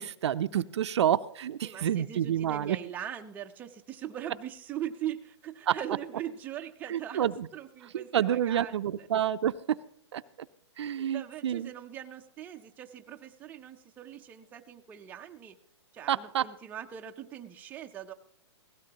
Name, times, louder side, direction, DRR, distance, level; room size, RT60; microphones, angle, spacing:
voice 1, 0.0-2.8 5.7-5.8 6.9-7.5 7.9-9.8 10.1-10.2 10.8-11.7 16.1-16.5, right 10 dB, 65° right, 13 dB, 0.5 m, -28 dB
voice 2, 1.6-8.7 11.1-15.5 15.9-18.1, right 10 dB, 10° right, 4 dB, 0.5 m, -41 dB
17.0 x 16.0 x 2.9 m, 0.69 s
hypercardioid pair, 150°, 16 cm